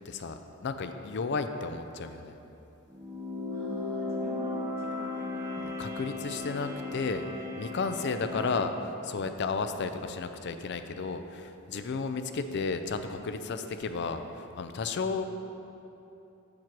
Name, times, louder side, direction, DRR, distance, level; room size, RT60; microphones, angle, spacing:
voice 1, 0.0-2.3 5.8-7.2 7.6-15.2, left 4 dB, 55° left, 8 dB, 0.4 m, -33 dB
sound 1, 2.9-8.6, left 2 dB, 15° right, 0.8 m, -36 dB
voice 2, 3.5-6.0 8.0-9.5, right 1 dB, 45° right, -4 dB, 1.7 m, -49 dB
7.5 x 7.4 x 4.6 m, 2.9 s
head